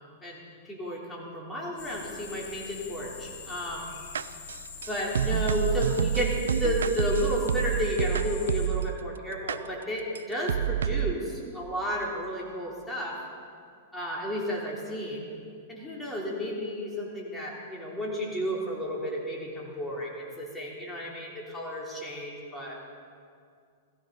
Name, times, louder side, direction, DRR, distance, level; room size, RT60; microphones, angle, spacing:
voice 1, 0.7-3.9 4.9-13.2 13.9-15.3 15.7-22.8, equal, 10° left, -4 dB, 3.5 m, -32 dB
sound 1, 1.8-8.7, left 6 dB, 60° left, 2.8 m, -44 dB
sound 2, 4.1-9.0 9.5-9.6 10.2-10.3 10.5-11.1, right 9 dB, 90° right, 0.4 m, -28 dB
17.0 x 15.5 x 4.0 m, 2.2 s
hypercardioid pair, 125°, 0 cm